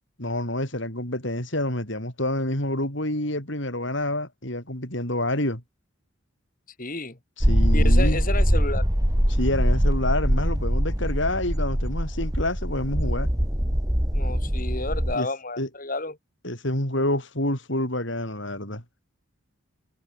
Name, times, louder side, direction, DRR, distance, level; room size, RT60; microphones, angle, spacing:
voice 1, 0.2-5.6 7.5-8.2 9.3-13.3 15.1-15.3 15.6-15.7 16.4-18.8, left 1 dB, 55° left, 6.8 m, -28 dB
voice 2, 6.8-7.2 7.7-8.9 14.1-16.2, left 2 dB, 40° left, 2.9 m, -31 dB
sound 1, 7.4-15.1, equal, 15° right, 3.4 m, -22 dB
head